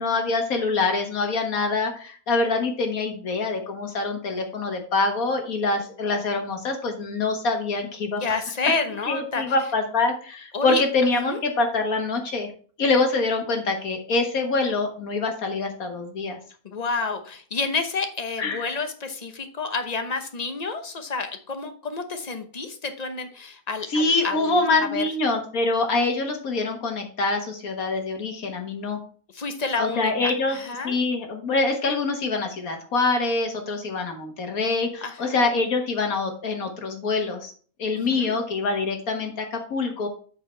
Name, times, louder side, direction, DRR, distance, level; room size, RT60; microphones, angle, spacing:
voice 1, 0.0-8.2 9.1-12.5 12.8-16.4 18.4-18.7 23.9-29.0 29.8-30.6 30.8-37.5 37.8-40.1, left 3 dB, 70° left, 4 dB, 1.9 m, -25 dB
voice 2, 8.2-9.5 10.5-10.8 11.2-11.4 16.6-24.6 24.9-25.0 29.3-31.0 35.0-35.4 37.9-38.3, left 4 dB, 30° left, 7 dB, 0.9 m, -29 dB
8.1 x 4.8 x 4.5 m, 0.43 s
omnidirectional pair, 1.6 m